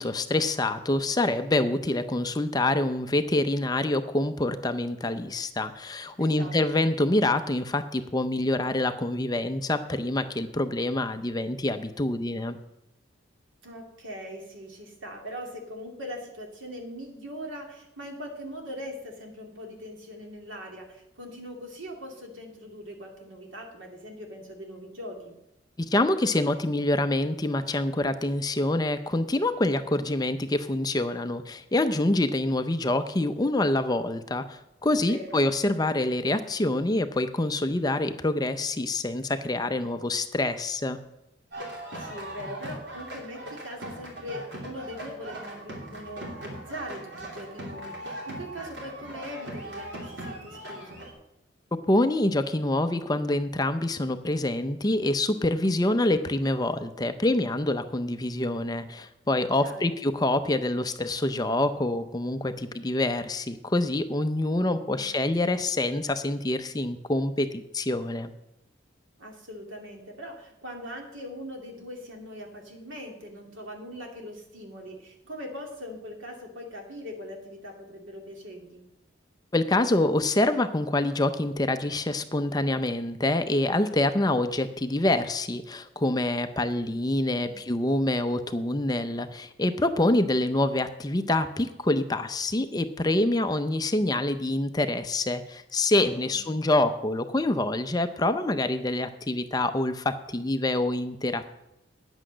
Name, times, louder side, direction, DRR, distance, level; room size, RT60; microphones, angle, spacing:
voice 1, 0.0-12.6 25.9-41.0 51.9-68.3 79.5-101.5, left 2 dB, 20° left, 9 dB, 0.5 m, -26 dB
voice 2, 6.2-6.9 13.6-25.3 34.9-35.4 42.0-51.0 59.6-60.0 64.8-65.2 69.2-78.8 87.3-87.6 96.0-96.6, equal, 90° right, 1 dB, 2.5 m, -41 dB
sound 1, 41.5-51.1, right 1 dB, 65° right, 3.0 m, -39 dB
9.8 x 8.1 x 6.2 m, 0.88 s
head